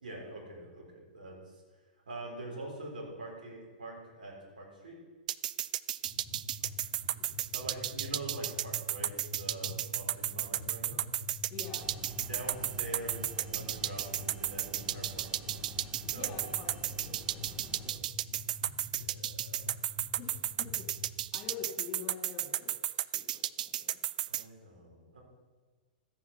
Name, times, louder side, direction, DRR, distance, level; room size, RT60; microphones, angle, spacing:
voice 1, 0.0-1.6 2.1-5.0 7.5-11.0 12.3-15.7 16.0-16.3 18.9-19.8 24.3-25.2, right 1 dB, 80° right, -1 dB, 4.2 m, -45 dB
sound 1, 5.3-24.4, right 12 dB, 60° right, 0.3 m, -33 dB
sound 2, 6.1-21.2, left 1 dB, 5° left, 3.9 m, -47 dB
voice 2, 6.9-7.3 11.5-11.9 16.1-18.1 20.2-20.9 21.3-24.0, left 7 dB, 35° left, 0 dB, 3.8 m, -47 dB
sound 3, 11.7-17.9, right 1 dB, 15° right, 1.9 m, -50 dB
13.5 x 8.5 x 5.9 m, 1.4 s
hypercardioid pair, 110°, 5 cm